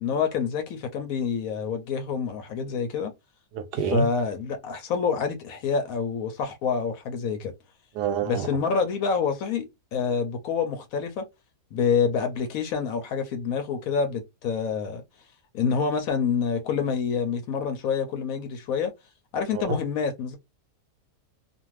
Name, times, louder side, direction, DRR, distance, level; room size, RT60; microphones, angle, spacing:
voice 1, 0.0-3.1 3.9-7.5 8.2-9.7 9.9-11.3 11.7-15.0 15.5-18.9 19.3-20.4, left 6 dB, 70° left, 0.9 m, -27 dB
voice 2, 3.5-4.1 7.9-8.5 19.5-19.8, right 5 dB, 80° right, 1.2 m, -27 dB
2.5 x 2.5 x 3.0 m
omnidirectional pair, 1.8 m